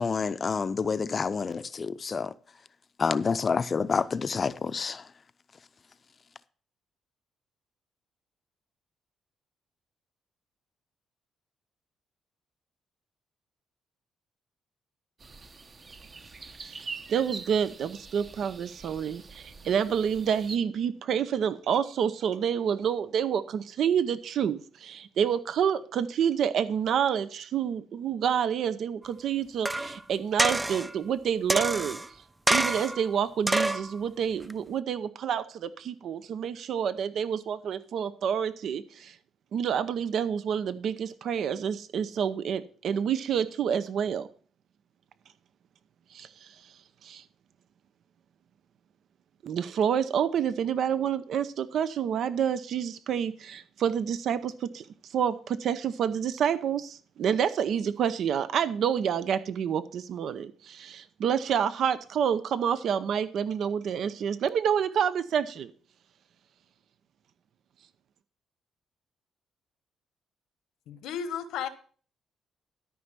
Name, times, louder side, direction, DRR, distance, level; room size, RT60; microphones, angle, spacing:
voice 1, 0.0-2.3 3.0-5.0, left 5 dB, 40° left, 0.6 m, -28 dB
sound 1, 15.2-20.6, right 4 dB, 35° right, 0.9 m, -44 dB
voice 2, 16.6-32.2 32.5-39.2 39.5-44.3 46.1-46.7 47.0-47.2 49.4-65.7, right 8 dB, 65° right, 0.7 m, -28 dB
sound 2, 29.7-30.0 30.4-30.9 31.5-32.1 32.5-33.0 33.5-33.9 34.5-34.6, right 1 dB, 10° right, 0.4 m, -26 dB
voice 3, 70.9-71.7, left 8 dB, 85° left, 1.1 m, -33 dB
13.0 x 5.4 x 6.1 m
cardioid pair, 90°, 0 cm